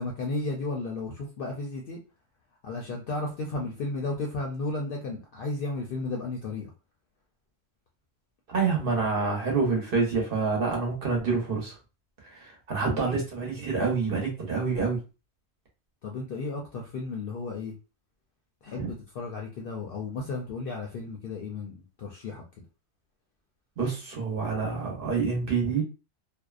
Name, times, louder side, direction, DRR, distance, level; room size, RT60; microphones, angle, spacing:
voice 1, 0.0-2.0 2.6-6.7 12.9-13.1 16.0-17.8 18.6-22.4, left 3 dB, 60° left, 0 dB, 0.7 m, -34 dB
voice 2, 8.5-11.8 12.2-15.0 18.8-18.9 23.8-25.8, right 4 dB, 55° right, 0 dB, 0.9 m, -27 dB
2.6 x 2.0 x 2.3 m, 0.31 s
omnidirectional pair, 1.1 m